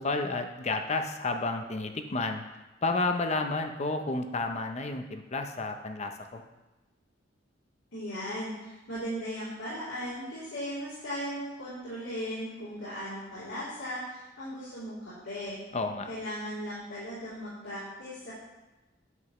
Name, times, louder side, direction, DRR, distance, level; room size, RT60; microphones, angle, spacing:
voice 1, 0.0-2.4 2.8-6.4 15.7-16.1, left 3 dB, 35° left, 6 dB, 0.6 m, -31 dB
voice 2, 7.9-15.6 16.0-18.3, equal, 80° left, -12 dB, 3.2 m, -37 dB
9.3 x 7.8 x 3.1 m, 1.1 s
head